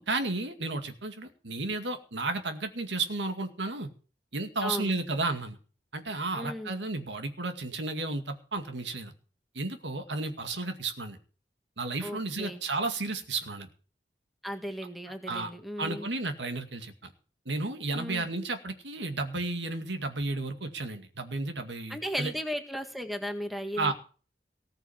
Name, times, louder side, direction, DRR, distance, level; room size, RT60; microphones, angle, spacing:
voice 1, 0.0-3.9 4.3-5.6 5.9-9.1 9.5-11.2 11.8-13.7 15.3-15.5 15.8-17.1 17.5-22.3 23.8-23.9, right 3 dB, 85° right, 7 dB, 2.2 m, -33 dB
voice 2, 4.6-4.9 6.3-6.7 12.0-12.6 14.4-16.1 17.9-18.2 21.9-23.9, equal, ahead, 6 dB, 1.8 m, -36 dB
19.0 x 6.7 x 7.2 m, 0.39 s
head